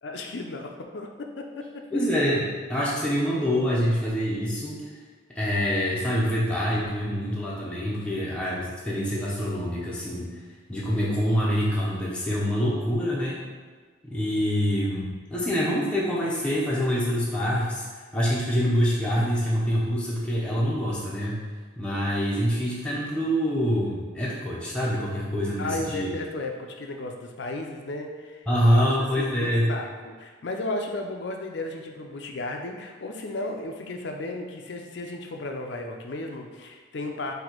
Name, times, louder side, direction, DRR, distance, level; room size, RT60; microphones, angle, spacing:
voice 1, 0.0-1.8 25.6-28.4 28.7-37.3, left 2 dB, 65° left, 3 dB, 0.5 m, -34 dB
voice 2, 1.9-4.8 5.3-10.4 10.7-13.4 14.0-17.8 18.1-21.4 21.8-26.1 28.5-29.7, equal, 5° left, -7 dB, 0.7 m, -25 dB
4.1 x 2.8 x 4.5 m, 1.5 s
head